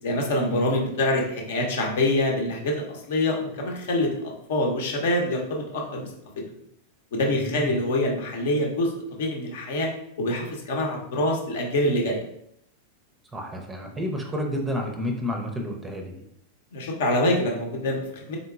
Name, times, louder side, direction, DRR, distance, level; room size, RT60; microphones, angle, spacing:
voice 1, 0.0-4.1 4.5-6.1 7.1-9.9 10.2-12.2 16.7-18.4, left 1 dB, 60° left, 1 dB, 0.9 m, -25 dB
voice 2, 7.4-7.7 13.3-16.2, equal, 10° right, 2 dB, 0.6 m, -30 dB
3.9 x 3.7 x 2.3 m, 0.75 s
figure-of-eight pair, 90°, 0 cm